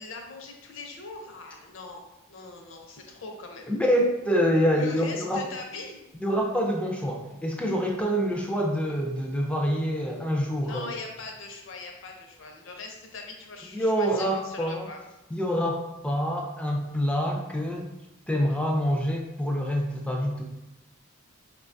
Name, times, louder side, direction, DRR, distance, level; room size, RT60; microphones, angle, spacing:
voice 1, 0.0-3.7 4.7-6.0 10.6-15.0, left 3 dB, 65° left, 2 dB, 0.6 m, -41 dB
voice 2, 3.7-5.4 6.1-10.9 13.7-14.9 15.3-17.9 18.3-20.4, equal, 5° left, 0 dB, 0.3 m, -26 dB
4.5 x 2.2 x 2.5 m, 0.95 s
head